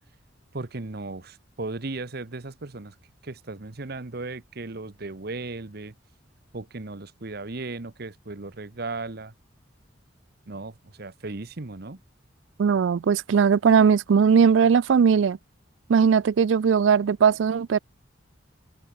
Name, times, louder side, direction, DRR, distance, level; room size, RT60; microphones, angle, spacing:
voice 1, 0.5-3.0 3.2-5.9 6.5-9.3 10.5-12.0, right 3 dB, 55° right, 1.1 m, -36 dB
voice 2, 12.6-15.4 15.9-17.8, right 6 dB, 80° right, 0.4 m, -19 dB
head